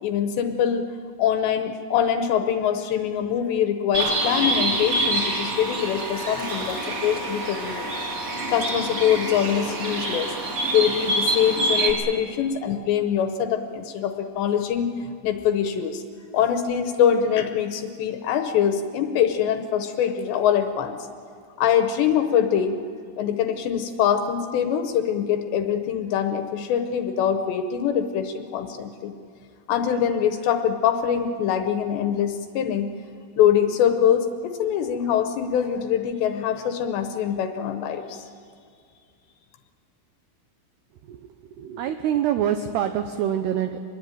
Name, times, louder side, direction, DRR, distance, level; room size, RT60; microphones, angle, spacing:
voice 1, 0.0-0.8 1.2-8.0 8.5-10.3 10.7-14.9 15.2-16.0 16.3-21.0 21.6-22.8 23.2-29.1 29.7-32.9 33.4-38.3, left 9 dB, 75° left, 7 dB, 2.8 m, -23 dB
Bird, 3.9-11.9, right 2 dB, 30° right, 4.6 m, -26 dB
voice 2, 41.6-43.8, right 10 dB, 90° right, 8 dB, 2.3 m, -25 dB
24.0 x 21.0 x 9.2 m, 2.2 s
omnidirectional pair, 5.9 m